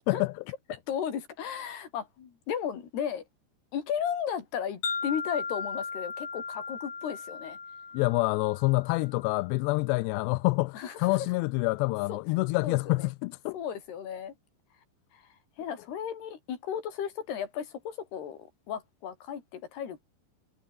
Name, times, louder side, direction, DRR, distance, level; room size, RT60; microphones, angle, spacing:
voice 1, 0.7-3.2 3.7-7.6 10.7-11.0 12.1-12.2 12.6-13.1 13.5-14.3 15.1-15.2 15.6-18.4 18.7-20.0, left 8 dB, 65° left, 5.1 m, -35 dB
Wind chime, 4.8-9.1, left 5 dB, 45° left, 5.7 m, -37 dB
voice 2, 7.9-13.6, left 23 dB, 80° left, 2.6 m, -27 dB
omnidirectional pair, 5.2 m